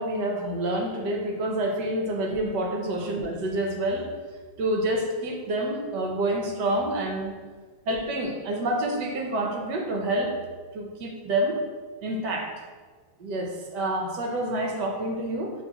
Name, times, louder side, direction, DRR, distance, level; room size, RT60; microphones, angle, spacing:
voice 1, 0.0-4.1 4.6-7.4 7.9-10.3 10.7-11.6 12.0-12.5 13.2-15.5, right 1 dB, 65° right, 2 dB, 1.3 m, -28 dB
9.8 x 3.3 x 2.9 m, 1.5 s
omnidirectional pair, 2.2 m